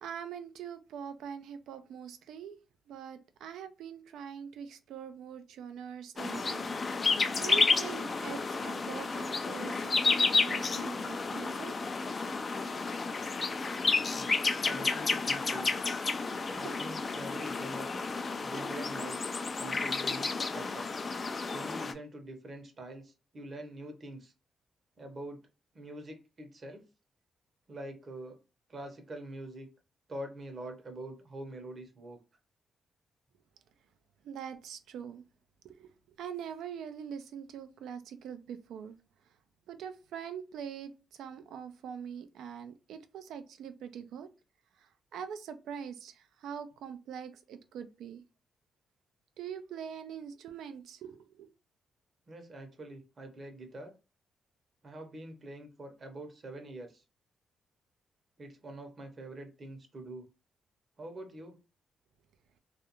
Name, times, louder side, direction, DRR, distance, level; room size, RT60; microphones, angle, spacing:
voice 1, 0.0-2.6 2.9-6.7 7.4-11.7 16.6-16.9 34.2-35.2 35.6-35.9 36.2-39.0 39.7-44.3 44.8-48.2 49.4-51.5, right 8 dB, 85° right, 0.3 m, -43 dB
sound 1, 6.2-21.9, left 4 dB, 40° left, 0.3 m, -31 dB
voice 2, 13.8-14.3 14.6-15.7 16.5-17.9 18.4-20.9 21.5-24.3 25.0-25.4 25.7-26.9 27.7-28.4 28.7-29.7 30.1-32.2 52.3-53.9 54.8-57.0 58.4-60.3 61.0-61.6, right 1 dB, 50° right, 0.8 m, -45 dB
2.4 x 2.2 x 2.9 m
cardioid pair, 65°, 0 cm